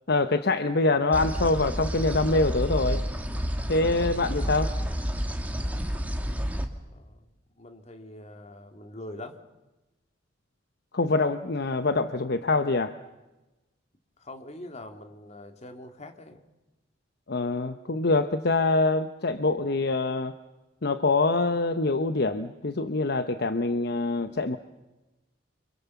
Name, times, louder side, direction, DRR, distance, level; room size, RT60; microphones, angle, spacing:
voice 1, 0.1-3.0 3.7-4.7 10.9-12.9 17.3-20.3 20.8-24.6, left 3 dB, 60° left, 10 dB, 1.0 m, -25 dB
sound 1, 1.1-6.6, equal, 10° right, 2.2 m, -30 dB
voice 2, 6.9-7.3 7.5-9.4 14.2-16.4, left 1 dB, 35° left, 6 dB, 2.4 m, -43 dB
29.5 x 25.0 x 7.1 m, 1.1 s
head